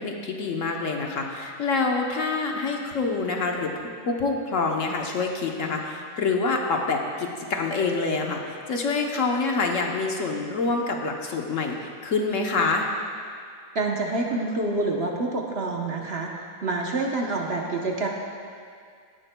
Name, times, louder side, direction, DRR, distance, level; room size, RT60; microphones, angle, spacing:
voice 1, 0.0-3.7 4.1-12.9, left 4 dB, 65° left, 1 dB, 1.2 m, -26 dB
voice 2, 13.7-16.3 16.6-18.1, right 2 dB, 50° right, 0 dB, 1.1 m, -27 dB
17.0 x 11.0 x 2.2 m, 2.2 s
omnidirectional pair, 1.5 m